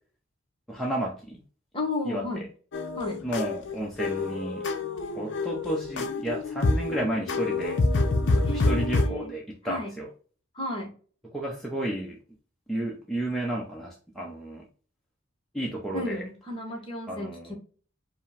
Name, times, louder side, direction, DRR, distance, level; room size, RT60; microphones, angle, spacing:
voice 1, 0.7-1.4 2.0-2.5 3.2-4.6 5.1-7.8 8.3-10.1 11.3-12.2 12.7-14.6 15.5-16.2 17.1-17.5, right 1 dB, ahead, -3 dB, 0.5 m, -32 dB
voice 2, 1.7-2.4 3.0-3.2 8.4-9.3 9.6-9.9 10.5-10.9 15.9-17.5, left 2 dB, 25° left, 2 dB, 0.9 m, -33 dB
sound 1, 2.7-9.1, left 2 dB, 55° left, 0.5 m, -27 dB
4.9 x 2.0 x 3.3 m, 0.40 s
head